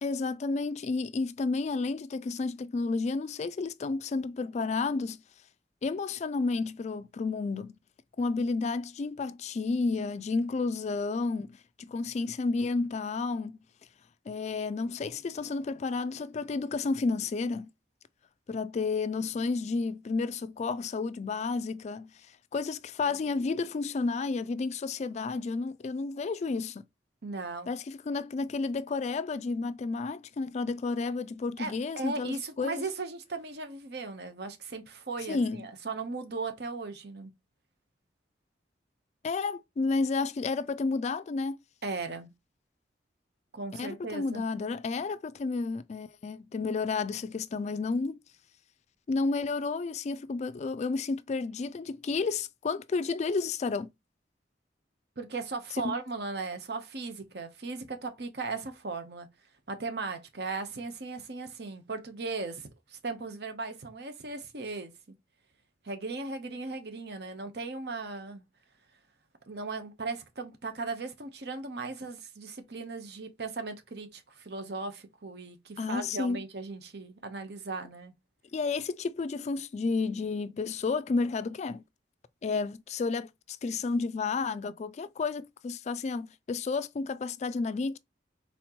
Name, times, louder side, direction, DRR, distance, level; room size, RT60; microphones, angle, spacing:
voice 1, 0.0-5.2 5.8-7.7 8.2-13.6 14.3-17.7 18.5-22.1 22.5-26.9 27.7-32.8 35.3-35.7 39.2-41.6 43.7-48.2 49.1-53.9 55.8-56.0 75.8-76.4 78.5-81.8 82.4-88.0, left 4 dB, 40° left, 0.3 m, -31 dB
voice 2, 27.2-27.7 31.6-37.3 41.8-42.3 43.5-44.4 55.2-59.3 59.7-64.9 65.8-68.4 69.5-78.1, right 3 dB, 65° right, 1.0 m, -37 dB
4.3 x 3.8 x 3.0 m
head